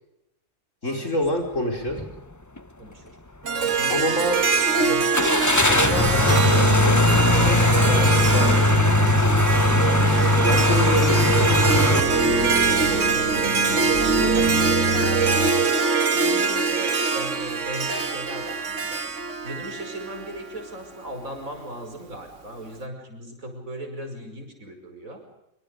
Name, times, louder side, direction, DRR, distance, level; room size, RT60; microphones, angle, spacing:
voice 1, 0.8-2.0 3.9-4.4 5.7-7.6 7.9-8.8 10.4-13.1, equal, 65° left, 2 dB, 5.4 m, -28 dB
sound 1, 1.9-2.1 2.6-2.7 5.1-12.0, left 2 dB, 15° left, 0.9 m, -19 dB
voice 2, 2.8-3.1 3.5-5.1 12.8-13.8 14.2-15.8 16.0-19.0 19.4-25.2, right 1 dB, 85° right, 4 dB, 6.0 m, -37 dB
Harp, 3.4-20.7, right 5 dB, 65° right, 1.7 m, -24 dB
sound 2, 5.8-15.5, equal, 85° left, 3.7 m, -28 dB
25.5 x 25.0 x 5.3 m, 0.86 s
omnidirectional pair, 1.4 m